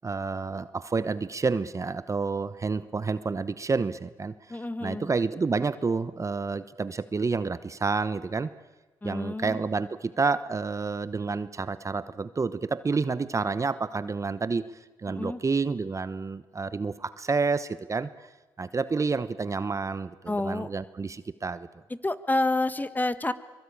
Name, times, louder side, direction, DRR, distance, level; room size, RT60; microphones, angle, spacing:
voice 1, 0.0-8.5 9.0-14.6 15.0-18.3 18.6-21.7, right 4 dB, 35° right, 14 dB, 1.0 m, -29 dB
voice 2, 4.5-5.1 9.0-9.6 15.1-15.4 20.3-20.7 22.0-23.3, left 2 dB, 20° left, 12 dB, 1.5 m, -28 dB
24.0 x 23.0 x 8.7 m, 1.2 s
supercardioid pair, 55°, 9 cm